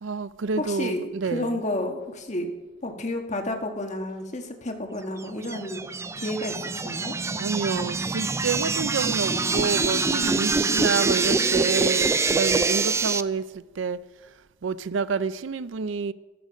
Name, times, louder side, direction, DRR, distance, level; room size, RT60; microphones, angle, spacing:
voice 1, 0.0-1.6 7.4-14.0 14.6-16.1, right 5 dB, 70° right, 0.5 m, -28 dB
voice 2, 0.6-2.5 2.8-5.8 6.1-7.1 9.3-10.8, left 1 dB, 35° left, 1.6 m, -32 dB
sound 1, 5.2-13.2, right 4 dB, 15° right, 0.3 m, -25 dB
13.0 x 12.5 x 5.2 m
head